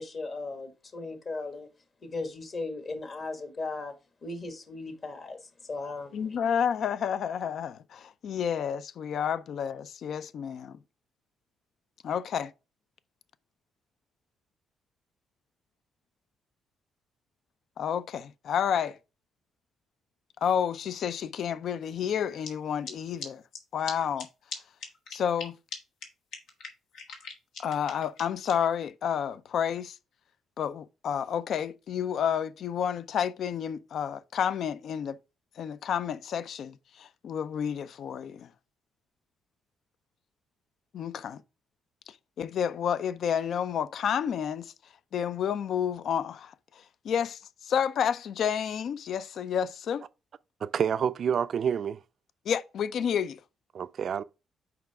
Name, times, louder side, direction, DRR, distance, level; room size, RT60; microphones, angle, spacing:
voice 1, 0.0-1.7 2.0-3.9 4.2-6.2, left 3 dB, 45° left, 1.6 m, -37 dB
voice 2, 6.1-10.8 12.0-12.5 17.8-19.0 20.4-23.4 23.7-24.3 25.1-25.6 27.6-30.0 30.6-35.2 35.6-38.5 40.9-41.4 42.1-44.7 45.1-50.0 52.5-53.4, left 8 dB, 65° left, 0.4 m, -30 dB
sound 1, 22.4-22.5 22.8-22.9 23.2-23.3 23.5-23.6 23.8-23.9 24.2-24.3 24.5-24.6 24.8-25.4 25.7-25.8 26.0-26.1 26.3-28.5, left 5 dB, 85° left, 1.5 m, -38 dB
voice 3, 50.6-52.0 53.7-54.2, right 7 dB, 55° right, 0.4 m, -28 dB
5.9 x 4.8 x 3.4 m
cardioid pair, 90°, 0 cm